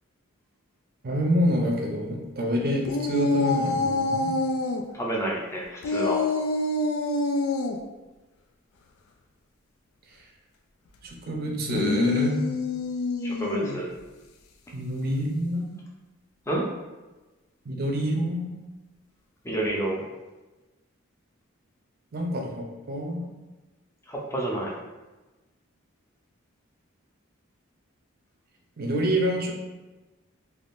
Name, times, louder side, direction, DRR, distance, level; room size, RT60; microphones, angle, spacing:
voice 1, 1.0-4.4 11.0-12.4 14.7-15.8 17.7-18.6 22.1-23.3 28.8-29.5, equal, 45° right, 1 dB, 0.5 m, -27 dB
sound 1, 2.8-4.8 5.8-7.8 11.6-13.8, left 2 dB, 85° left, 0.3 m, -26 dB
voice 2, 4.9-6.2 13.2-13.9 16.5-16.6 19.4-20.0 24.1-24.7, right 1 dB, 15° left, -3 dB, 0.5 m, -29 dB
3.4 x 2.4 x 2.5 m, 1.1 s
head